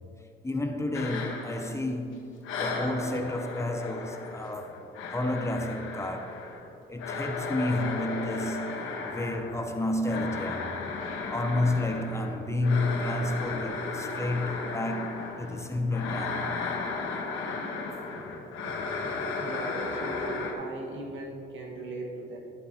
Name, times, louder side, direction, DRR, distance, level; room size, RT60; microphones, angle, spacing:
voice 1, 0.4-4.8 5.1-6.5 6.9-10.8 11.3-16.5, left 1 dB, 15° left, 0.8 m, -31 dB
sound 1, 0.9-2.1 2.4-20.5, left 4 dB, 90° left, 1.2 m, -35 dB
voice 2, 19.0-22.4, right 2 dB, 75° right, 1.6 m, -38 dB
12.0 x 7.7 x 2.9 m
cardioid pair, 90°, 20 cm